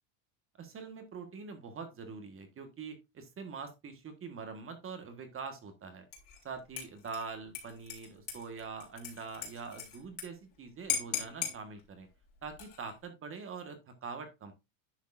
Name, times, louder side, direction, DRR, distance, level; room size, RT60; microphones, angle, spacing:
voice 1, 0.6-6.1 6.4-12.1 12.4-14.5, right 5 dB, 25° right, 7 dB, 1.5 m, -44 dB
Dishes pots and pans / Liquid, 6.1-6.4 6.8-10.2 10.5-10.6 10.9-11.6 12.4-12.9, left 7 dB, 40° left, 4.1 m, -38 dB
11.0 x 6.5 x 2.5 m, 0.23 s
cardioid pair, 160°, 50 cm